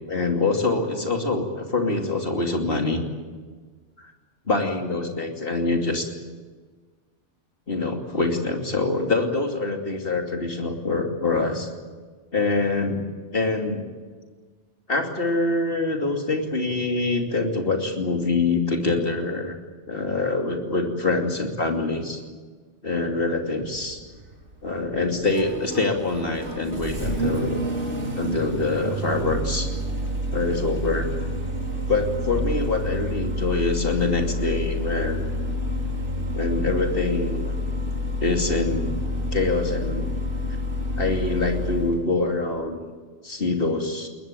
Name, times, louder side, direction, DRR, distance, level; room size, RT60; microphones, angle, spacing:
voice 1, 0.1-3.0 4.0-4.1 4.5-6.1 7.7-11.7 12.3-13.0 13.3-13.8 14.9-19.6 19.9-22.2 22.8-24.0 24.6-27.6 28.2-29.7 30.3-31.1 31.9-35.3 36.3-37.5 38.2-38.9 39.3-40.1 41.0-42.9 43.2-44.1, left 3 dB, 50° left, 3 dB, 3.0 m, -25 dB
Engine starting, 23.7-42.0, left 1 dB, 75° right, 4.0 m, -28 dB
21.5 x 20.5 x 9.1 m, 1.4 s
omnidirectional pair, 1.2 m